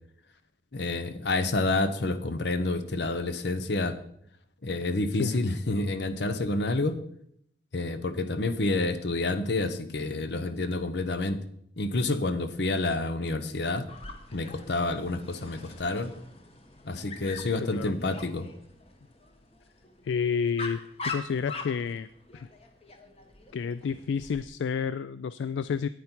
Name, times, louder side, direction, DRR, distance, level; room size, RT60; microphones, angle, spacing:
voice 1, 0.7-4.0 4.6-7.0 7.7-11.4 11.8-13.9 14.3-16.1 16.9-18.5, left 2 dB, 75° left, 11 dB, 0.9 m, -29 dB
Dog, 13.9-24.5, left 3 dB, 35° left, 1.1 m, -43 dB
voice 2, 20.0-22.5 23.5-25.9, left 6 dB, 90° left, 15 dB, 0.3 m, -30 dB
9.5 x 9.2 x 4.5 m, 0.71 s
head